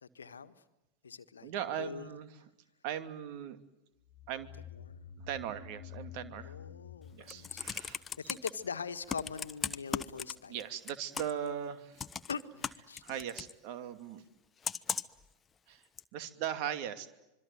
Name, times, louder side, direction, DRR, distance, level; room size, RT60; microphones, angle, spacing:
voice 1, 0.0-0.5 1.0-1.5 1.8-2.1 4.8-5.0 6.4-7.6 7.9-10.6 12.3-13.0, left 6 dB, 70° left, 11 dB, 1.5 m, -42 dB
voice 2, 1.4-2.3 2.8-3.6 4.3-4.5 5.2-6.5 7.1-8.0 10.5-12.0 13.0-14.2 15.7-15.8 16.1-17.1, right 9 dB, 45° right, 10 dB, 2.6 m, -39 dB
sound 1, 4.1-8.6, left 8 dB, 40° left, 1.7 m, -50 dB
Computer keyboard, 7.1-8.5 9.1-10.6 10.9-11.5 12.0-13.5 14.6-15.2 16.0-16.1, left 6 dB, 20° left, 1.1 m, -37 dB
26.0 x 24.0 x 9.3 m, 0.95 s
figure-of-eight pair, 90°, 0 cm